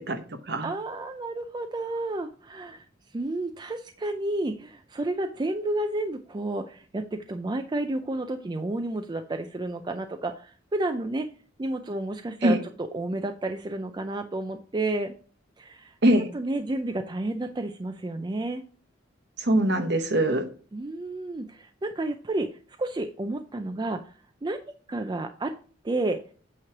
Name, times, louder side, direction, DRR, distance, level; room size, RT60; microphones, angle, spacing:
voice 1, 0.0-0.7 12.4-12.6 16.0-16.3 19.4-20.5, right 1 dB, 55° right, 8 dB, 1.0 m, -23 dB
voice 2, 0.6-2.9 3.1-11.3 11.6-15.1 15.6-16.0 16.3-18.6 20.7-24.1 24.4-24.6 24.9-25.5 25.8-26.2, right 2 dB, 20° right, 7 dB, 0.4 m, -31 dB
8.7 x 3.1 x 5.8 m, 0.40 s
head